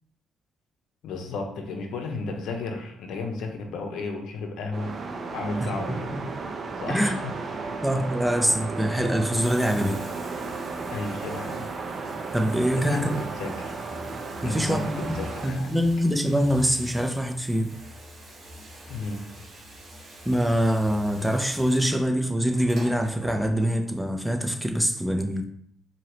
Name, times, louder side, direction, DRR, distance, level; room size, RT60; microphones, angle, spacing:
voice 1, 1.0-5.0 5.3-6.1 6.8-7.3 9.7-9.8 10.9-11.7 12.7-13.8 14.4-15.8 18.9-19.4, left 3 dB, 80° left, 4 dB, 0.7 m, -33 dB
sound 1, 4.7-15.5, right 4 dB, 45° right, 0.6 m, -34 dB
voice 2, 7.8-10.0 12.3-13.2 14.4-17.7 20.3-25.5, equal, 5° right, 4 dB, 0.6 m, -24 dB
Bathtub (filling or washing), 9.0-23.9 25.0-25.1, equal, 65° right, 1.6 m, -45 dB
4.6 x 2.8 x 3.0 m, 0.66 s
cardioid pair, 90°, 0 cm